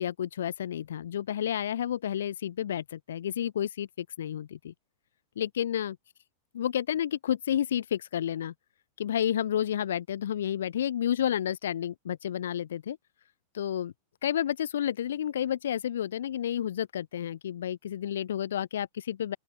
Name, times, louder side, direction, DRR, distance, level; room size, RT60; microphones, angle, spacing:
voice 1, 0.0-4.7 5.4-6.0 6.6-8.5 9.0-13.0 13.5-13.9 14.2-19.4, left 10 dB, 65° left, 0.3 m, -30 dB
open air
figure-of-eight pair, 90°, 0 cm